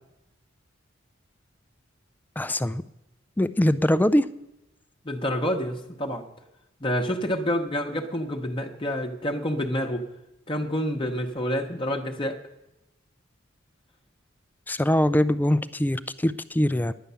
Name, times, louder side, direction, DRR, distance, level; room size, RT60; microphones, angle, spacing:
voice 1, 2.4-2.8 3.4-4.3 14.7-16.9, left 1 dB, 10° left, 14 dB, 0.3 m, -22 dB
voice 2, 5.0-6.2 6.8-10.1 10.5-12.4, equal, 25° left, 3 dB, 0.9 m, -28 dB
10.5 x 9.6 x 6.9 m, 0.91 s
head